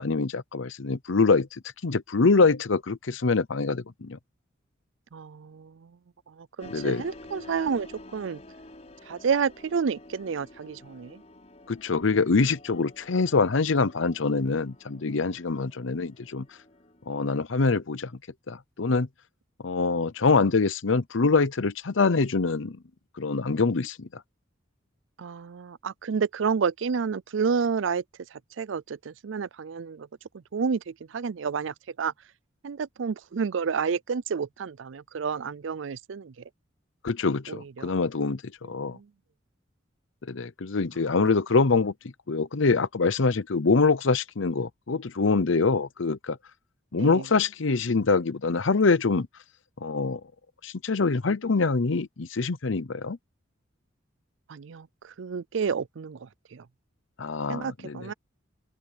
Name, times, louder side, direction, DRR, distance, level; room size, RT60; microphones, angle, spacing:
voice 1, 0.0-1.5 1.8-4.2 6.7-7.0 11.7-16.4 17.1-18.1 18.5-19.1 19.6-22.8 23.2-24.1 37.0-39.0 40.3-41.9 42.3-46.4 46.9-49.3 49.8-50.2 50.6-53.2 57.2-58.0, left 4 dB, 75° left, 0.8 m, -24 dB
voice 2, 5.1-6.0 6.3-8.4 9.1-11.2 25.2-28.0 28.3-30.1 30.5-32.1 32.6-36.3 37.5-38.0 38.6-39.1 41.1-41.4 47.0-47.3 54.5-56.7 57.5-58.1, right 6 dB, 70° right, 0.5 m, -30 dB
sound 1, 6.6-17.4, left 1 dB, 35° left, 5.2 m, -49 dB
open air
head